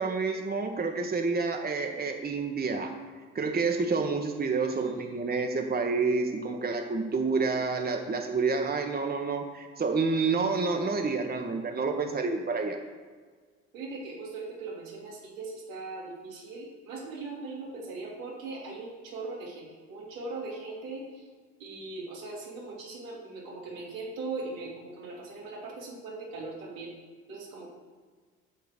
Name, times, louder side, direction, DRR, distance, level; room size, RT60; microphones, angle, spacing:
voice 1, 0.0-2.9 3.3-12.8, right 4 dB, 25° right, 3 dB, 1.2 m, -29 dB
voice 2, 4.3-5.6 13.7-21.2 21.6-26.9 27.3-27.7, right 3 dB, 80° right, -5 dB, 2.9 m, -40 dB
12.5 x 4.6 x 6.6 m, 1.5 s
hypercardioid pair, 50°, 40 cm